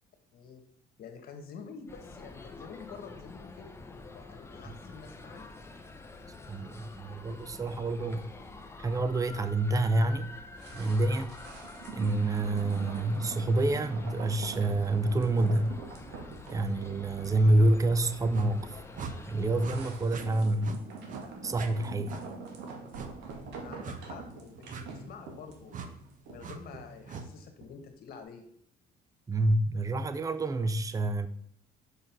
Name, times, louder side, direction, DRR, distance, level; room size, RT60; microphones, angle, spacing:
voice 1, 0.3-0.6 1.0-3.7 4.1-5.5 23.6-25.9 26.3-28.4, left 6 dB, 65° left, 1.6 m, -48 dB
sound 1, 1.9-19.9, left 3 dB, 15° left, 0.9 m, -47 dB
voice 2, 6.5-8.3 8.8-10.3 10.7-11.3 11.9-15.8 16.5-18.8 19.3-20.8 21.4-22.2 29.3-31.3, right 2 dB, 20° right, 0.6 m, -27 dB
sound 2, 10.6-27.8 28.1-28.2, right 4 dB, 85° right, 1.7 m, -44 dB
sound 3, 18.3-18.5 18.9-19.1 19.6-19.8 20.1-20.3 20.6-20.8 21.1-21.2 21.5-21.7 22.1-22.2 22.9-23.1 23.8-24.0 24.7-24.8 25.7-25.9 26.4-26.6 27.1-27.3, right 5 dB, 50° right, 1.0 m, -41 dB
6.2 x 5.5 x 6.0 m
cardioid pair, 110°, 17 cm